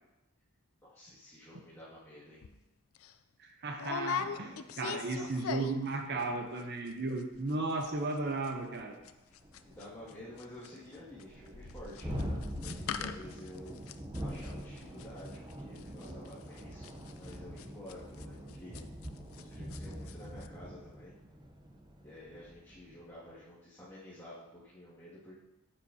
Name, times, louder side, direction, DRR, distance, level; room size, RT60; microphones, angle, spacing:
voice 1, 0.8-2.4 4.3-6.4 9.6-13.8 14.1-18.8 19.3-21.1 22.0-25.3, left 1 dB, 15° left, -11 dB, 2.1 m, -51 dB
sound 1, 2.4-2.6 3.0-3.1 3.8-5.9 6.2-6.6 6.9-7.0 7.2-7.5 7.8-19.4 19.7-20.1 20.4-20.5, left 7 dB, 80° left, 0.4 m, -41 dB
voice 2, 3.6-9.0, right 3 dB, 55° right, 4 dB, 0.7 m, -35 dB
Thunderstorm, 8.6-8.7 9.0-9.1 9.4-23.0, equal, 20° right, 0.8 m, -44 dB
9.2 x 7.4 x 2.8 m, 1.0 s
head